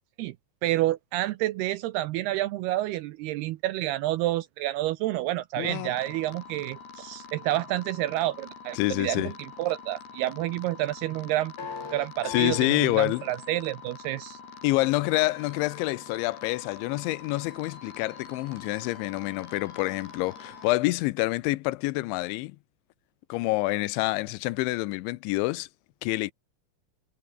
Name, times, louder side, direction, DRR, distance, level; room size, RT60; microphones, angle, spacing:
voice 1, 0.6-14.4, right 15 dB, 80° right, 2.4 m, -29 dB
voice 2, 5.6-5.9 8.8-9.3 12.3-13.2 14.6-22.6 23.3-25.7 26.0-26.3, left 20 dB, 85° left, 3.1 m, -27 dB
sound 1, 5.7-20.7, left 5 dB, 65° left, 8.3 m, -44 dB
omnidirectional pair, 5.2 m